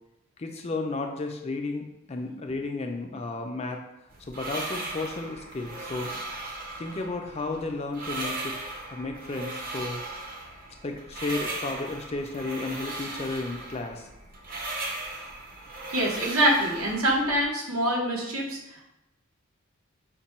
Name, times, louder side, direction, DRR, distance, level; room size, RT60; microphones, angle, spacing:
voice 1, 0.4-3.8 4.3-6.1 6.8-8.5 8.9-10.0 10.8-14.1, left 3 dB, 30° left, 3 dB, 0.4 m, -33 dB
sound 1, 4.1-17.5, right 2 dB, 40° right, 0.7 m, -37 dB
voice 2, 15.9-18.8, right 1 dB, 80° right, -2 dB, 1.1 m, -25 dB
5.2 x 2.2 x 4.2 m, 0.87 s
head